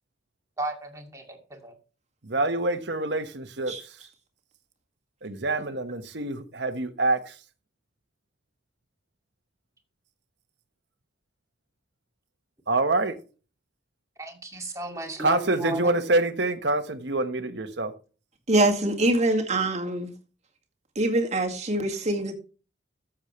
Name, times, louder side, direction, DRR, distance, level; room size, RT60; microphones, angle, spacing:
voice 1, 0.6-1.7 14.2-16.0, right 2 dB, 20° right, 2.3 m, -34 dB
voice 2, 2.2-3.7 5.2-7.3 12.7-13.2 15.2-17.9, right 2 dB, 70° right, 1.3 m, -26 dB
voice 3, 18.5-20.1 21.0-22.3, right 1 dB, 40° right, 2.0 m, -24 dB
13.5 x 7.5 x 3.2 m
head